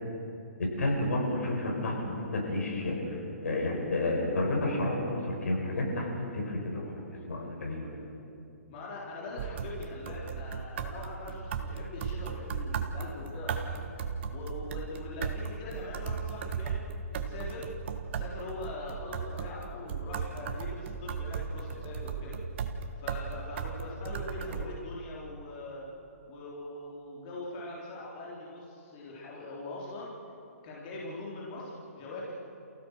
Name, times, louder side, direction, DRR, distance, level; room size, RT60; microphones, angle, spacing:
voice 1, 0.6-6.1 6.3-6.9 7.3-8.0, left 2 dB, 70° left, 0 dB, 6.1 m, -31 dB
voice 2, 8.7-13.9 14.3-17.7 18.1-22.4 23.0-25.9 26.3-30.1 30.6-32.4, left 2 dB, 35° left, -5 dB, 4.0 m, -42 dB
sound 1, 9.4-24.6, right 6 dB, 45° right, 1.4 m, -36 dB
28.0 x 16.0 x 6.6 m, 2.8 s
hypercardioid pair, 155°, 8 cm